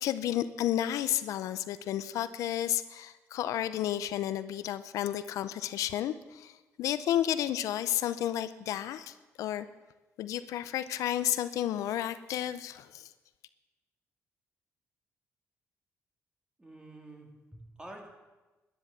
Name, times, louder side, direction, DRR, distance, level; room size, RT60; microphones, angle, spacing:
voice 1, 0.0-6.5 6.8-9.7 10.2-13.1, left 11 dB, 85° left, 13 dB, 0.6 m, -32 dB
voice 2, 16.6-18.1, right 1 dB, 15° right, 1 dB, 3.3 m, -48 dB
13.0 x 10.0 x 7.4 m, 1.1 s
cardioid pair, 90°, 5 cm